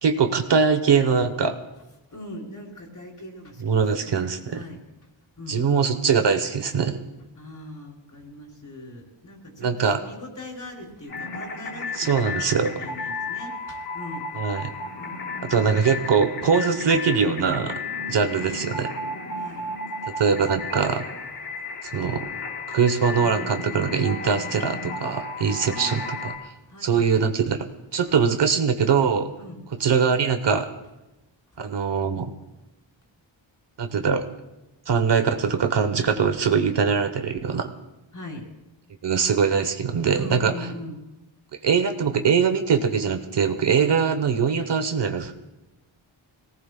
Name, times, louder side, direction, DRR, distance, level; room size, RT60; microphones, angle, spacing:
voice 1, 0.0-1.6 3.6-4.6 5.5-7.0 9.6-10.0 12.0-12.7 14.3-14.7 15.5-17.8 18.1-18.9 20.2-21.1 21.8-22.3 22.7-26.3 26.8-27.6 27.9-29.3 29.8-30.7 31.6-32.3 33.8-34.3 34.9-37.7 39.0-40.5 41.6-45.3, right 6 dB, 60° right, 8 dB, 1.0 m, -22 dB
voice 2, 2.1-4.8 5.4-5.7 7.3-14.2 15.0-15.3 18.0-18.2 19.3-19.7 21.9-22.0 25.5-26.3 26.7-27.2 29.4-29.6 31.5-31.6 38.1-38.4 40.1-41.0, left 1 dB, 40° left, 0 dB, 3.7 m, -41 dB
sound 1, 11.1-26.3, left 3 dB, 60° left, 4.3 m, -33 dB
26.0 x 18.0 x 2.2 m, 1.0 s
wide cardioid pair, 145°, 48 cm